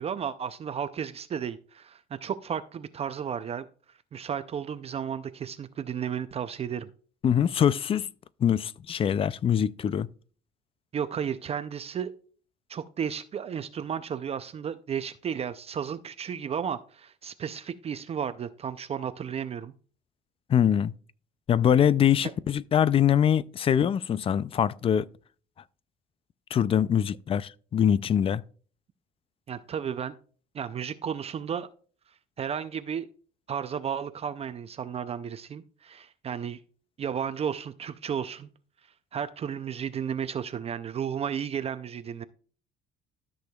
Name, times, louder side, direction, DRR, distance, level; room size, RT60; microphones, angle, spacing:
voice 1, 0.0-3.7 4.1-6.9 10.9-12.1 12.7-19.7 22.2-22.3 29.5-30.1 30.5-31.7 32.4-33.1 33.5-36.6 37.0-38.5 39.1-42.2, right 8 dB, 35° right, 0.5 m, -33 dB
voice 2, 7.2-8.1 8.4-10.1 20.5-20.9 21.5-25.1 26.5-28.4, left 9 dB, 35° left, 0.4 m, -23 dB
13.0 x 6.3 x 2.3 m
cardioid pair, 110°, 17 cm